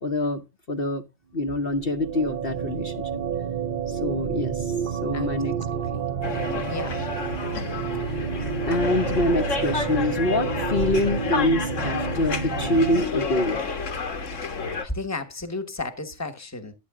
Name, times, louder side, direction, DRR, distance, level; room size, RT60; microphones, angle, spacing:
voice 1, 0.0-0.4 0.7-1.0 1.3-3.1 3.9-5.6 8.1-13.6, left 1 dB, 50° left, 1.2 m, -25 dB
sound 1, 1.6-13.0, right 7 dB, 45° right, 0.9 m, -30 dB
voice 2, 5.6-6.1 6.7-7.0 14.3-16.7, left 2 dB, 15° left, 1.4 m, -34 dB
sound 2, 6.2-14.8, left 4 dB, 70° left, 1.7 m, -30 dB
12.0 x 9.5 x 3.7 m
omnidirectional pair, 1.3 m